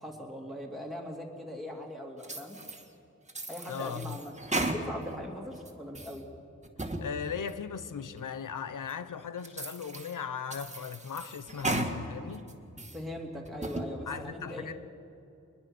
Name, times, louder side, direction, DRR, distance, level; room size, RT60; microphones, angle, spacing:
voice 1, 0.0-2.6 3.5-4.3 4.6-6.3 12.9-14.7, equal, ahead, 3.0 m, -40 dB
sound 1, 2.2-2.8 3.3-5.2 5.6-6.2 6.6-7.1 7.5-7.6 8.2-8.3 8.9-9.0 9.4-10.1 10.5-11.9 12.3-13.0 13.5-13.9, right 2 dB, 20° right, 2.0 m, -35 dB
voice 2, 3.7-4.2 7.0-12.5 14.1-14.8, left 7 dB, 90° left, 1.0 m, -38 dB
23.0 x 21.0 x 6.3 m
wide cardioid pair, 80°, 30 cm